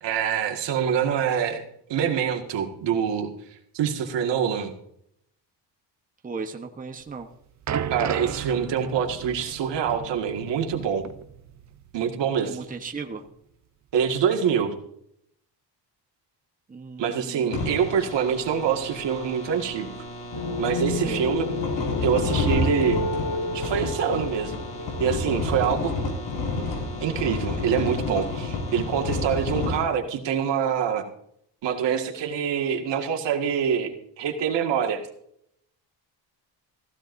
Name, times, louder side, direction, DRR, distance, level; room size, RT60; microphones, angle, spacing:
voice 1, 0.0-1.6 1.9-3.3 3.7-4.7 7.9-11.0 11.9-12.6 13.9-14.8 17.0-19.9 20.6-21.5 22.0-23.0 23.5-24.6 25.0-25.9 27.0-31.0 31.6-33.9 34.2-35.0, right 8 dB, 75° right, 3 dB, 1.9 m, -25 dB
voice 2, 6.2-7.3 12.4-13.2 16.7-17.5 20.9-21.2, right 4 dB, 20° right, 4 dB, 1.1 m, -36 dB
sound 1, 7.1-11.9 12.2-12.4 13.1-13.2, right 8 dB, 40° right, 0.6 m, -35 dB
sound 2, 17.5-29.8, left 2 dB, 90° left, 5.7 m, -30 dB
sound 3, 20.3-26.2, left 2 dB, 55° left, 3.5 m, -31 dB
15.5 x 15.5 x 2.6 m, 0.74 s
cardioid pair, 145°, 43 cm